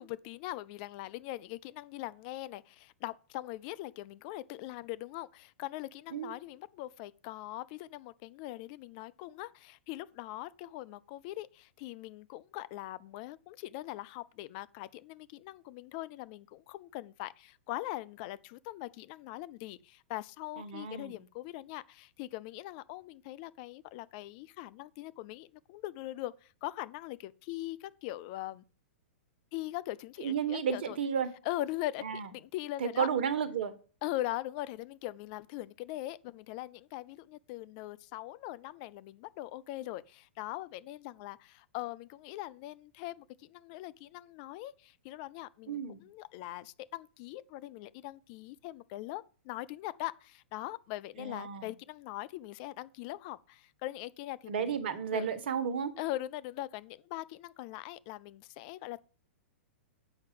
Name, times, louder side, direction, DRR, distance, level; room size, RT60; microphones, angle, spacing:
voice 1, 0.0-28.6 29.5-31.0 31.5-33.1 34.0-54.8 55.1-55.3 56.0-59.0, left 16 dB, 40° left, 0.5 m, -41 dB
voice 2, 20.6-21.2 30.2-31.3 32.0-32.3 32.8-33.7 45.7-46.0 51.2-51.7 54.5-55.9, right 7 dB, 60° right, 1.4 m, -32 dB
7.8 x 5.6 x 7.6 m
figure-of-eight pair, 105°, 6 cm